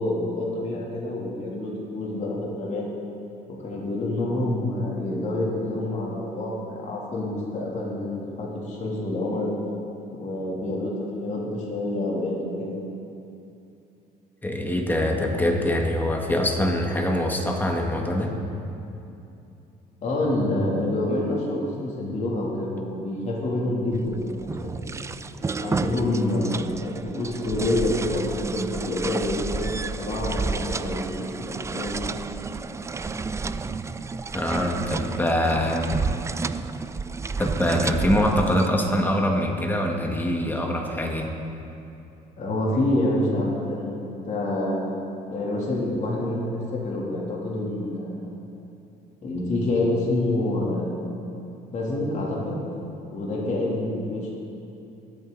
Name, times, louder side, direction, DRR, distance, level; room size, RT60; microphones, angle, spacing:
voice 1, 0.0-2.8 3.6-9.5 10.1-10.9 11.2-12.9 20.0-25.0 25.6-31.9 42.4-44.8 45.3-48.2 49.2-51.1 51.7-52.6 53.1-54.3, left 1 dB, 45° left, -4 dB, 3.1 m, -27 dB
voice 2, 14.4-18.3 34.3-35.9 37.4-41.3, left 1 dB, 10° left, 2 dB, 1.7 m, -24 dB
sound 1, 23.9-38.7, right 4 dB, 15° right, 0.4 m, -31 dB
23.5 x 8.4 x 4.1 m, 2.8 s
cardioid pair, 110°, 17 cm